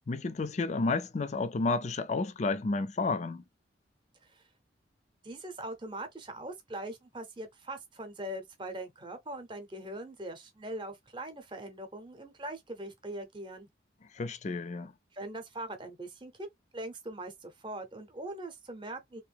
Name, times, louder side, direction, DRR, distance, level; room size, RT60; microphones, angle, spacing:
voice 1, 0.1-3.4 14.1-14.9, left 3 dB, 40° left, 0.4 m, -31 dB
voice 2, 5.2-13.7 15.1-16.5 16.7-19.2, right 1 dB, 25° right, 0.8 m, -41 dB
3.0 x 2.6 x 3.4 m
head